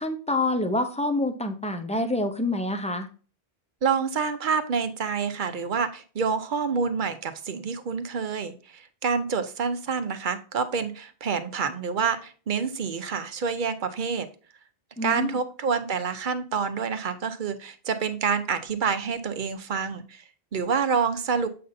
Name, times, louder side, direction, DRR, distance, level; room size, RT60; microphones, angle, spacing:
voice 1, 0.0-3.1 15.0-15.4, left 1 dB, 10° left, 6 dB, 0.4 m, -27 dB
voice 2, 3.8-14.3 15.0-20.2 20.5-21.5, right 5 dB, 55° right, 9 dB, 0.8 m, -27 dB
7.7 x 5.4 x 2.6 m, 0.38 s
omnidirectional pair, 1.1 m